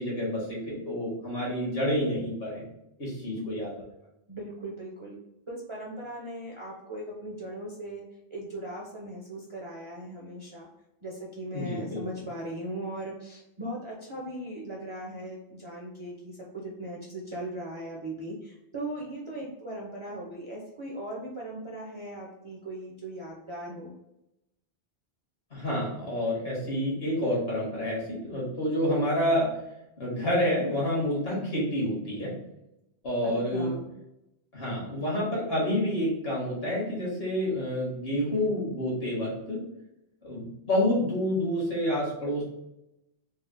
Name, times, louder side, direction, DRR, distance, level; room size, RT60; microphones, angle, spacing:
voice 1, 0.0-2.6 3.0-3.7 11.5-12.0 25.5-29.6 30.0-32.3 33.0-33.7 34.5-39.6 40.2-42.4, left 1 dB, 65° left, -5 dB, 1.6 m, -28 dB
voice 2, 4.3-5.2 5.5-8.1 8.3-10.7 11.0-24.0 33.2-33.9, right 1 dB, 35° right, -3 dB, 0.5 m, -38 dB
4.1 x 2.0 x 2.5 m, 0.86 s
omnidirectional pair, 1.1 m